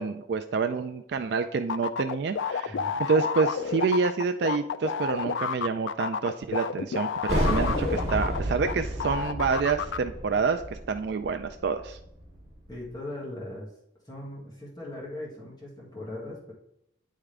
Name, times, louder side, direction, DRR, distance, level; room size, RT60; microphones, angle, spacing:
voice 1, 0.0-10.6 10.9-12.0, right 5 dB, 55° right, 8 dB, 0.3 m, -28 dB
sound 1, 1.7-8.7 9.0-10.0, left 6 dB, 70° left, 0.4 m, -30 dB
voice 2, 2.7-3.0 12.7-13.7 14.0-16.5, left 1 dB, 20° left, -6 dB, 1.8 m, -39 dB
sound 2, 7.3-12.6, equal, 35° right, 2.0 m, -31 dB
9.5 x 3.7 x 3.3 m, 0.76 s
head